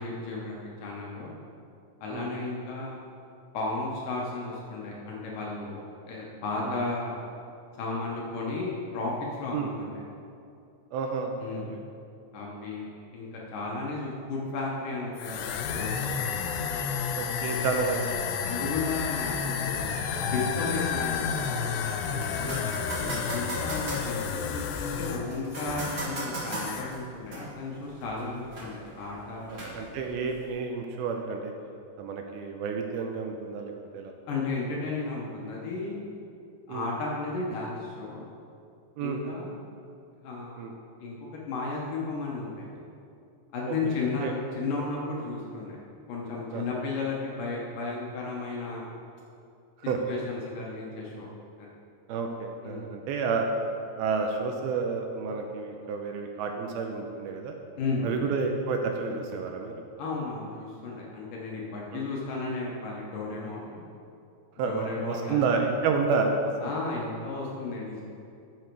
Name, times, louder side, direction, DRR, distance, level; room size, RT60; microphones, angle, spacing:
voice 1, 0.0-1.3 2.0-3.0 3.5-5.8 6.1-7.2 7.8-9.1 9.4-10.0 11.4-11.7 12.3-16.4 18.5-22.2 23.3-29.6 34.3-36.0 36.7-38.3 39.0-39.6 40.2-40.7 41.0-42.8 43.5-45.8 46.1-48.9 50.1-51.3 51.6-51.7 52.6-52.9 57.8-58.2 60.0-63.8 64.6-65.6 66.6-68.1, left 3 dB, 65° left, -3 dB, 2.3 m, -34 dB
voice 2, 10.9-11.4 11.7-11.8 12.5-12.7 13.7-13.8 17.2-18.2 22.4-23.2 29.5-31.5 32.0-34.1 36.7-36.9 39.0-39.3 40.6-40.7 43.7-44.0 44.2-44.3 46.5-46.7 49.9-50.0 52.1-53.5 54.0-57.5 58.0-59.8 61.9-62.1 64.6-66.7, right 4 dB, 80° right, 3 dB, 2.4 m, -30 dB
sound 1, 15.2-26.2 26.4-27.0, left 6 dB, 90° left, 2.8 m, -31 dB
sound 2, 20.5-30.5, right 1 dB, 45° right, 1.5 m, -40 dB
10.5 x 7.7 x 4.6 m, 2.6 s
omnidirectional pair, 4.7 m